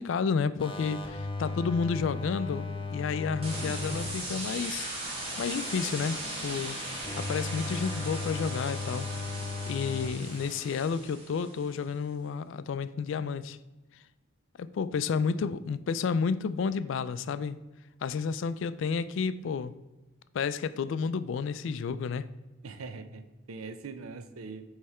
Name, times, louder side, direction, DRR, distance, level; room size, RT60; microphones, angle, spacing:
voice 1, 0.0-4.9 5.4-6.8 7.2-9.1 9.7-13.6 14.6-17.6 18.0-19.7 20.3-22.3, left 5 dB, 60° left, 14 dB, 0.3 m, -31 dB
sound 1, 0.6-4.1 4.4-10.1 10.4-10.9, left 4 dB, 25° left, 0.7 m, -37 dB
sound 2, 3.4-11.6, right 1 dB, 30° right, 1.4 m, -38 dB
voice 2, 22.6-24.6, right 4 dB, 85° right, 9 dB, 0.6 m, -42 dB
8.3 x 3.3 x 4.2 m, 1.1 s
head